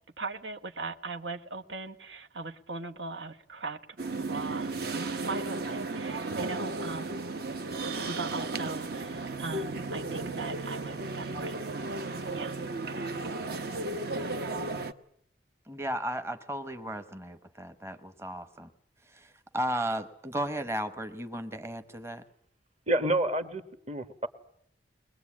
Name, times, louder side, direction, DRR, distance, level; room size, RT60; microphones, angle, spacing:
voice 1, 0.2-3.8 4.1-7.2 7.9-11.6 12.3-12.6, right 3 dB, 90° right, 1.3 m, -39 dB
sound 1, 4.0-14.9, right 3 dB, 60° right, 1.0 m, -34 dB
voice 2, 15.7-18.7 19.1-22.2, right 1 dB, 15° right, 0.9 m, -35 dB
voice 3, 22.9-24.3, right 1 dB, 35° right, 1.3 m, -29 dB
22.0 x 21.0 x 8.6 m
head